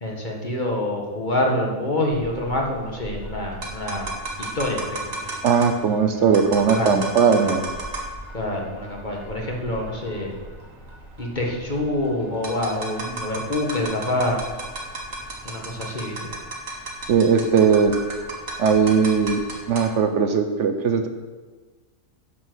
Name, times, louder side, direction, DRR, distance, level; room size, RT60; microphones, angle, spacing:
voice 1, 0.0-4.1 4.4-5.3 6.5-6.9 7.4-7.5 8.3-10.3 11.2-14.4 15.5-16.3, left 1 dB, 35° left, -1 dB, 1.8 m, -26 dB
sound 1, 2.1-20.0, right 2 dB, 85° right, 2.1 m, -35 dB
voice 2, 5.4-7.6 17.1-17.9 18.6-19.4 19.7-21.1, right 6 dB, 65° right, 7 dB, 1.1 m, -19 dB
9.4 x 7.3 x 6.3 m, 1.3 s
omnidirectional pair, 1.4 m